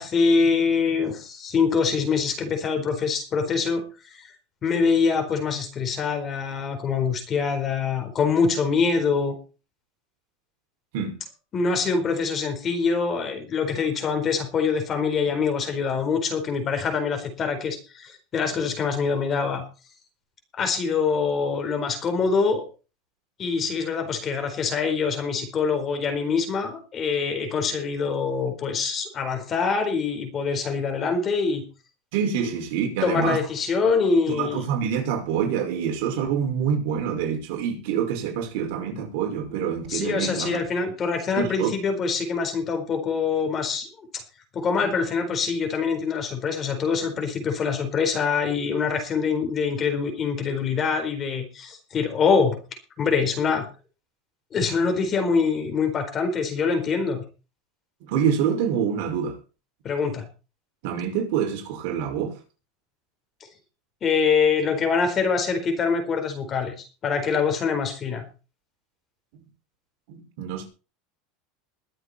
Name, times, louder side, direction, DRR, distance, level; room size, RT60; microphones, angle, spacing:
voice 1, 0.0-3.8 4.2-4.3 4.6-9.3 11.5-19.6 20.6-22.6 23.4-31.6 33.0-34.6 39.9-44.2 44.5-52.6 53.0-53.7 54.5-57.2 59.8-60.3 64.0-68.2, left 5 dB, 25° left, 4.3 m, -24 dB
voice 2, 32.1-33.4 34.3-40.6 41.4-41.7 44.8-44.9 58.0-59.4 60.8-62.4 70.1-70.7, right 7 dB, 65° right, 5.7 m, -26 dB
22.5 x 7.8 x 4.4 m
supercardioid pair, 150°, 0 cm